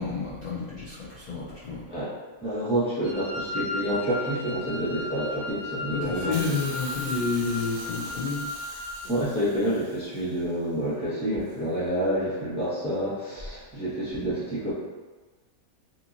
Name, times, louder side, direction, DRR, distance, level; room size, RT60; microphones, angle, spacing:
voice 1, 0.0-1.8 5.9-8.4, left 4 dB, 55° left, -10 dB, 0.5 m, -30 dB
voice 2, 2.4-6.3 9.1-14.7, right 1 dB, 5° right, -13 dB, 1.0 m, -28 dB
Wind instrument woodwind instrument, 3.0-9.1, left 3 dB, 80° left, 1.1 m, -35 dB
Hiss, 6.3-10.4 11.5-11.6, right 3 dB, 65° right, 0.8 m, -43 dB
2.8 x 2.6 x 2.5 m, 1.3 s
omnidirectional pair, 1.5 m